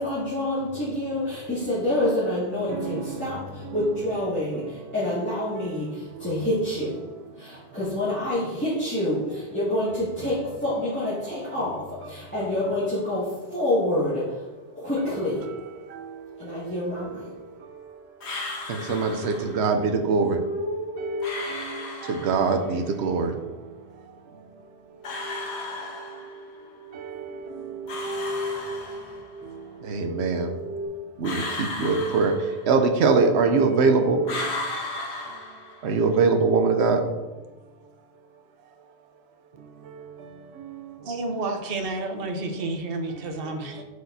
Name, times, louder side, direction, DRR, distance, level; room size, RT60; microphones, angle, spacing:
voice 1, 0.0-7.0 7.4-14.4 14.7-15.5 16.4-17.2, left 1 dB, 10° left, -11 dB, 2.1 m, -27 dB
voice 2, 2.7-3.2 18.7-20.4 22.1-23.3 27.0-27.1 29.9-30.5 31.2-32.3 32.7-34.2 35.8-37.0, right 4 dB, 90° right, 5 dB, 1.0 m, -22 dB
sound 1, 16.2-16.3 17.1-17.3 18.2-22.7 24.9-30.9, equal, 25° left, 1.4 m, -36 dB
sound 2, 18.2-19.7 21.2-22.7 25.0-26.6 27.9-29.4 31.2-33.0 34.2-36.1, left 2 dB, 80° left, 1.3 m, -35 dB
voice 3, 41.0-43.8, right 2 dB, 60° right, 4 dB, 1.1 m, -30 dB
8.0 x 6.7 x 2.7 m, 1.2 s
omnidirectional pair, 1.1 m